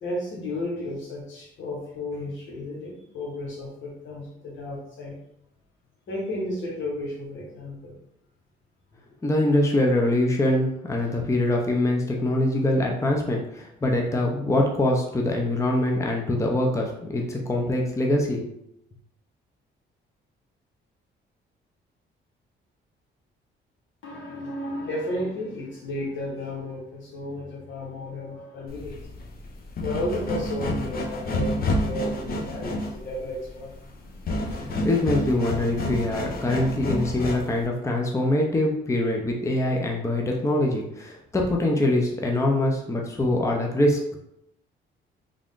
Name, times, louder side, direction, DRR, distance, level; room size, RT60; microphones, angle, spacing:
voice 1, 0.0-5.1 6.1-7.9 13.8-14.0 24.0-34.8, left 1 dB, 75° left, -3 dB, 1.4 m, -33 dB
voice 2, 9.2-18.5 34.5-44.0, left 1 dB, 15° left, 0 dB, 0.6 m, -24 dB
sound 1, 28.7-37.6, left 1 dB, 50° left, 0.7 m, -29 dB
3.6 x 2.5 x 3.6 m, 0.79 s
cardioid pair, 90°, 20 cm